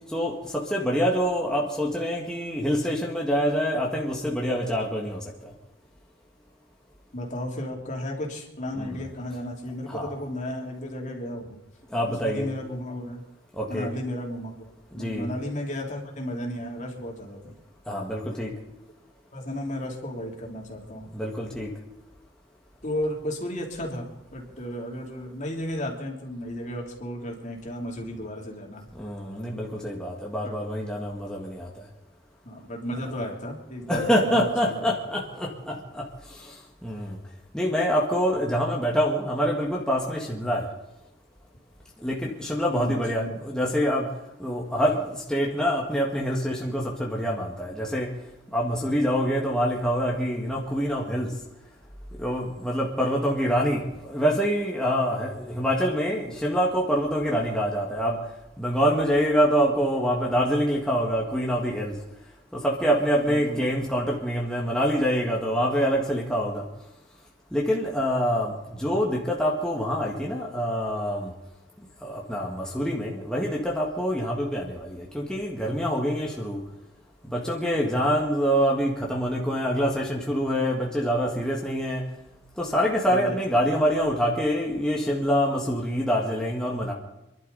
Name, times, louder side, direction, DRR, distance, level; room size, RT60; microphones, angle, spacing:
voice 1, 0.1-5.2 8.8-9.0 9.9-10.1 11.9-12.5 13.6-13.9 14.9-15.3 17.9-18.5 21.1-21.7 29.0-31.7 33.9-36.0 36.4-36.5 36.8-37.2 37.5-40.7 42.0-44.1 44.4-48.1 48.5-51.3 52.2-58.2 58.6-61.9 62.5-66.6 67.5-71.3 72.0-76.6 77.3-82.0 82.6-86.9, equal, 5° left, -3 dB, 1.8 m, -25 dB
voice 2, 7.1-11.6 12.1-13.2 13.7-17.6 19.3-21.1 22.8-28.9 30.4-30.5 32.4-34.9 42.7-43.4 63.2-63.6 83.1-83.4, left 1 dB, 45° left, 0 dB, 3.2 m, -34 dB
27.5 x 11.5 x 4.1 m, 0.93 s
head